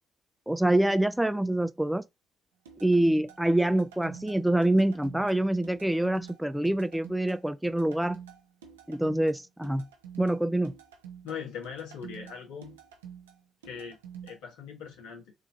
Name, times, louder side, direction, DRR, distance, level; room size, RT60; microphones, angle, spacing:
voice 1, 0.5-2.1 2.8-8.2 8.9-9.9 10.2-10.7, right 1 dB, 5° right, 0.4 m, -26 dB
sound 1, 2.7-14.4, right 8 dB, 90° right, 0.6 m, -48 dB
voice 2, 11.2-12.8 13.6-14.0 14.2-15.3, left 7 dB, 75° left, 1.4 m, -40 dB
3.0 x 2.8 x 4.1 m
hypercardioid pair, 45°, 0 cm